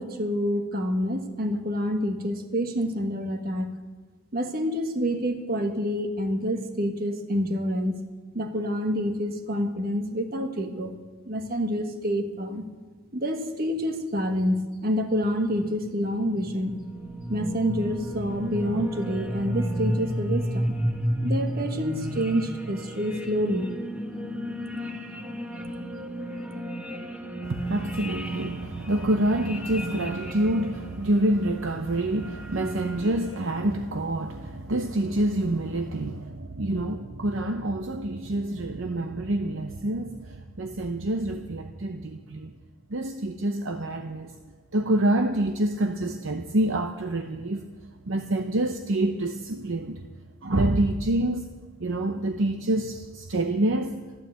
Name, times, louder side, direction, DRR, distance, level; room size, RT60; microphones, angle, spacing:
voice 1, 0.0-3.7 4.3-8.0 8.3-10.9 11.3-12.6 13.1-14.6 14.8-16.8 17.3-20.7 21.2-23.7 25.5-25.7, equal, 40° right, 1.5 m, -27 dB
sound 1, 15.5-33.8, equal, 5° right, 1.2 m, -33 dB
voice 2, 27.4-42.5 42.9-44.3 44.7-47.6 48.1-50.1 50.4-51.5 51.8-54.0, right 1 dB, 60° right, 0.8 m, -27 dB
14.0 x 12.0 x 8.0 m
head